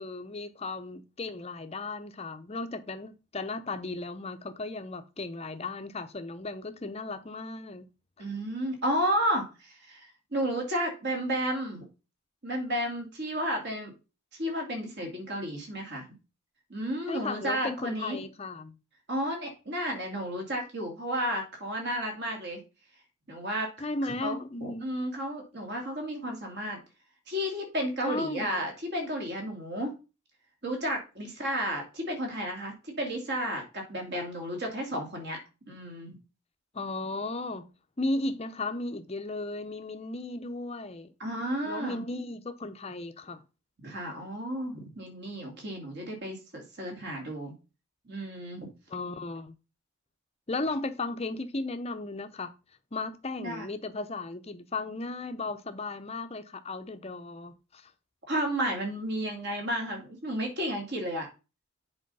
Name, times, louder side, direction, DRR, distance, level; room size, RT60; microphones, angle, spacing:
voice 1, 0.0-7.9 17.1-18.7 23.8-24.9 28.0-28.6 36.7-37.7 38.0-41.1 41.6-43.4 48.9-49.5 50.5-52.5 52.9-57.9, left 2 dB, 30° left, 0.7 m, -35 dB
voice 2, 8.2-11.8 12.4-13.9 14.4-16.1 16.7-18.2 19.1-22.6 23.3-23.7 24.0-24.3 24.6-26.8 27.3-29.9 30.6-35.4 35.7-36.2 41.2-42.0 43.8-47.5 48.1-48.7 53.4-53.6 58.3-61.3, equal, 50° right, 2.5 m, -32 dB
7.8 x 4.3 x 5.5 m
head